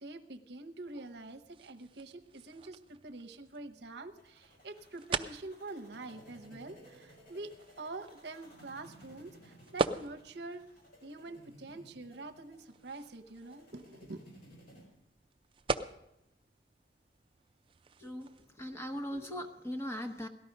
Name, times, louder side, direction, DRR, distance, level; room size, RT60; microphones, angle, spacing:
voice 1, 0.0-7.5 7.8-10.6 11.0-14.2, right 2 dB, 65° right, 6 dB, 0.9 m, -46 dB
sound 1, 0.8-18.5, right 3 dB, 30° right, 0.4 m, -43 dB
sound 2, 4.2-14.8, equal, 50° left, 5.5 m, -58 dB
voice 2, 18.0-20.3, equal, 15° left, 6 dB, 1.0 m, -39 dB
17.5 x 12.5 x 5.3 m, 0.85 s
head